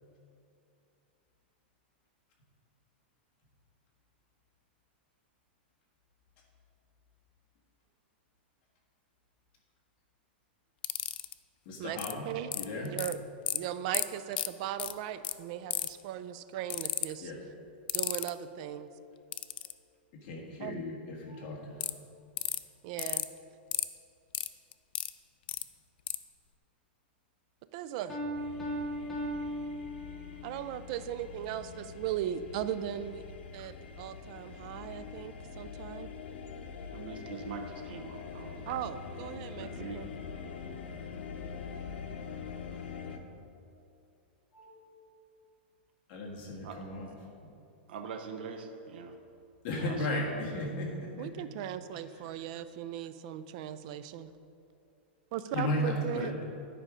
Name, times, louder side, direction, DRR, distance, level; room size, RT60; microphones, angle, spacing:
sound 1, 10.8-11.3 12.0-12.1 12.5-13.1 13.5-13.6 13.9-14.1 14.3-14.5 14.8-14.9 15.2-15.3 15.7-16.0 16.7-17.1 17.9-18.3 19.3-19.7 21.8-21.9 22.4-22.6 23.0-23.3 23.7-23.9 24.3-25.1 25.5-25.6 26.1-26.2, left 13 dB, 65° left, 0.4 m, -32 dB
voice 1, 11.6-12.3 12.5-13.0 17.2-17.4 20.1-21.8 44.5-45.0 46.1-47.1 47.4-47.5 49.6-51.5 55.5-56.4, left 1 dB, 40° left, -1 dB, 1.5 m, -35 dB
voice 2, 12.8-13.2 13.5-17.3 17.9-18.9 20.6-20.8 22.8-23.3 27.7-28.2 30.4-33.2 33.5-36.1 38.7-39.7 39.9-40.1 51.2-54.3 55.3-56.3, right 11 dB, 40° right, 13 dB, 0.4 m, -38 dB
Piano, 28.1-30.6, equal, 5° left, 1.0 m, -37 dB
sound 2, 28.3-43.2, left 6 dB, 90° left, 0.8 m, -44 dB
voice 3, 36.9-38.6 39.6-40.1 46.6-46.8 47.9-49.2 49.8-50.2, right 5 dB, 65° right, 5 dB, 0.8 m, -43 dB
9.9 x 5.1 x 4.9 m, 2.6 s
supercardioid pair, 160°, 6 cm